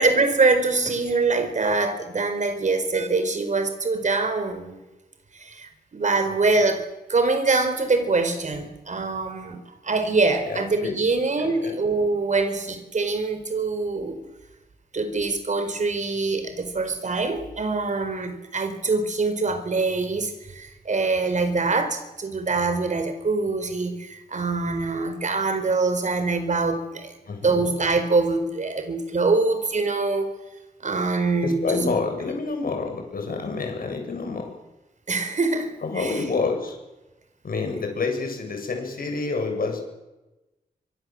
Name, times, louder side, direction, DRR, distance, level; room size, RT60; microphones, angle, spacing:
voice 1, 0.0-4.8 5.3-14.2 14.9-27.1 27.4-30.3 30.8-31.9 35.1-36.2, right 3 dB, 45° right, 8 dB, 4.6 m, -24 dB
voice 2, 10.4-11.0 11.4-11.7 27.3-27.6 31.4-34.5 35.8-36.8 37.4-39.8, left 4 dB, 60° left, 4 dB, 7.7 m, -28 dB
27.5 x 24.5 x 7.9 m, 1.0 s
wide cardioid pair, 125°, 17 cm